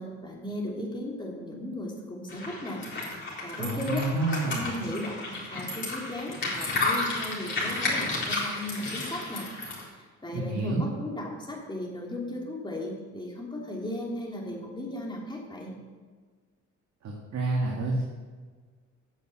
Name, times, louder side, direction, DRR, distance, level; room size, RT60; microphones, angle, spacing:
voice 1, 0.0-2.8 3.4-4.1 4.3-9.5 9.9-15.7, left 1 dB, 15° left, -2 dB, 3.0 m, -36 dB
sound 1, 2.3-9.8, left 2 dB, 40° left, 4.1 m, -32 dB
voice 2, 3.6-4.7 10.3-10.8 17.0-18.0, right 2 dB, 60° right, -1 dB, 1.8 m, -29 dB
9.3 x 7.1 x 7.5 m, 1.5 s
cardioid pair, 90°, 30 cm